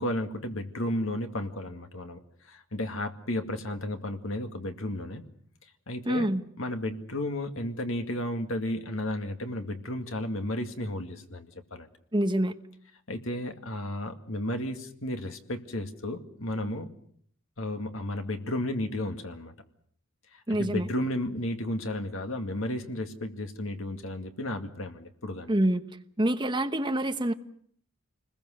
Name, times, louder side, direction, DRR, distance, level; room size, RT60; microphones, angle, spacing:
voice 1, 0.0-2.2 2.4-5.2 5.9-6.3 6.6-11.9 13.1-16.9 17.6-19.5 20.5-25.5, left 1 dB, 65° left, 6 dB, 2.1 m, -33 dB
voice 2, 6.1-6.4 12.1-12.6 20.5-20.9 25.5-25.8 26.2-27.3, right 1 dB, 20° right, 8 dB, 1.1 m, -26 dB
28.0 x 21.0 x 6.5 m, 0.63 s
head